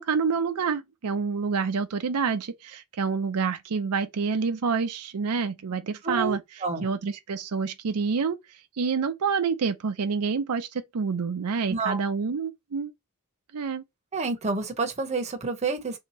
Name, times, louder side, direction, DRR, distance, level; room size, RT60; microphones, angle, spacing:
voice 1, 0.0-8.4 8.8-12.9 13.5-13.8, right 5 dB, 85° right, 0.5 m, -28 dB
voice 2, 6.0-6.9 11.7-12.0 14.1-16.0, right 4 dB, 30° right, 0.8 m, -29 dB
3.4 x 2.8 x 4.1 m
head